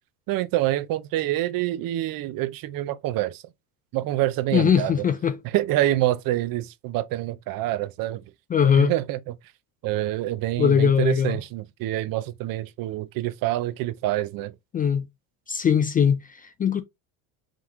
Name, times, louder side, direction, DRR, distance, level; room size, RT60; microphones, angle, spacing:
voice 1, 0.3-3.4 3.9-5.0 5.4-8.2 8.8-9.4 9.8-14.5, right 15 dB, 50° right, 0.6 m, -26 dB
voice 2, 4.5-5.4 8.5-8.9 10.6-11.4 14.7-15.1 15.5-16.8, left 7 dB, 20° left, 0.3 m, -21 dB
3.8 x 3.0 x 3.5 m
supercardioid pair, 115°, 44 cm